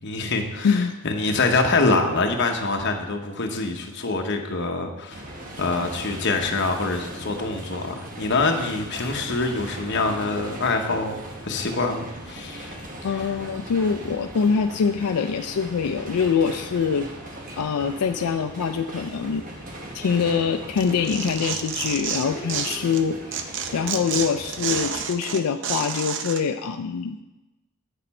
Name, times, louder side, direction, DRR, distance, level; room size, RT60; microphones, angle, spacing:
voice 1, 0.0-5.2 5.6-12.8 13.1-13.2, left 3 dB, 50° left, 3 dB, 1.0 m, -25 dB
sound 1, 5.1-25.0, right 1 dB, 35° right, 1.1 m, -38 dB
voice 2, 13.0-17.1 17.6-19.4 19.9-23.2 23.7-27.2, left 6 dB, 85° left, 7 dB, 0.4 m, -24 dB
Tearing, 20.8-23.0 23.3-26.4, right 7 dB, 55° right, 0.6 m, -29 dB
9.1 x 6.7 x 4.2 m, 1.0 s
head